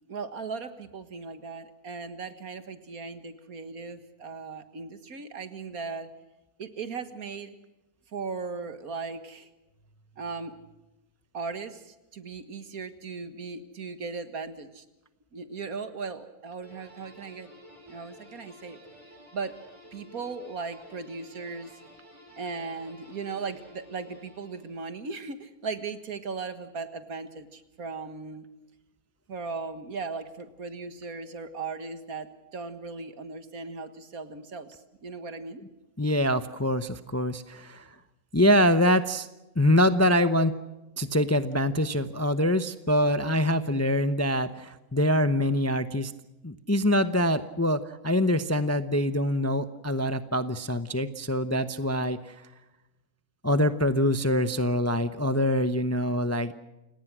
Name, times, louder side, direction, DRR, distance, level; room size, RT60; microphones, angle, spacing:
voice 1, 0.1-6.1 6.6-7.6 8.1-9.5 10.2-10.6 11.3-14.9 15.3-17.5 17.9-18.8 19.3-19.5 19.9-21.8 22.4-28.5 29.3-35.6, right 4 dB, 70° right, 10 dB, 2.1 m, -37 dB
sound 1, 16.6-25.0, equal, 20° right, 6.7 m, -52 dB
voice 2, 36.0-37.9 38.3-39.3 39.6-40.6 41.0-46.1 46.4-52.4 53.4-56.5, equal, 15° left, 11 dB, 0.7 m, -24 dB
29.5 x 18.0 x 6.2 m, 0.98 s
omnidirectional pair, 1.6 m